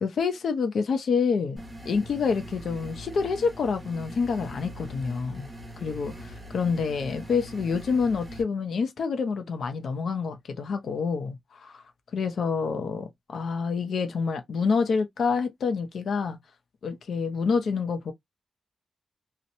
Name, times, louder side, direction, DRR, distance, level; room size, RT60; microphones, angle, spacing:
voice 1, 0.0-1.6 1.9-5.5 5.8-11.8 12.1-16.4 16.8-18.1, left 5 dB, 75° left, 0.4 m, -27 dB
sound 1, 1.6-8.4, equal, 15° right, 1.1 m, -42 dB
2.8 x 2.0 x 2.6 m
wide cardioid pair, 165°, 0 cm